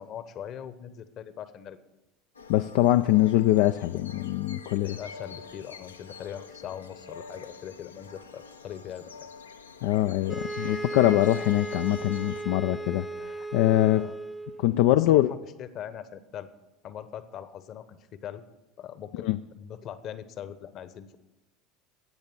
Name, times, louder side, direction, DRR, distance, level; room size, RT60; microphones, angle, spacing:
voice 1, 0.0-1.8 4.8-9.1 13.9-14.2 14.9-16.5 16.8-18.4 18.8-21.2, left 9 dB, 45° left, 14 dB, 1.0 m, -41 dB
sound 1, 2.3-12.4, left 5 dB, 80° left, 0.8 m, -46 dB
voice 2, 2.5-5.0 9.8-14.1 14.6-15.3 19.2-19.4, left 15 dB, 60° left, 10 dB, 0.4 m, -23 dB
sound 2, 10.3-14.7, right 2 dB, ahead, 0.9 m, -36 dB
14.0 x 8.8 x 7.0 m, 1.0 s
figure-of-eight pair, 70°, 0 cm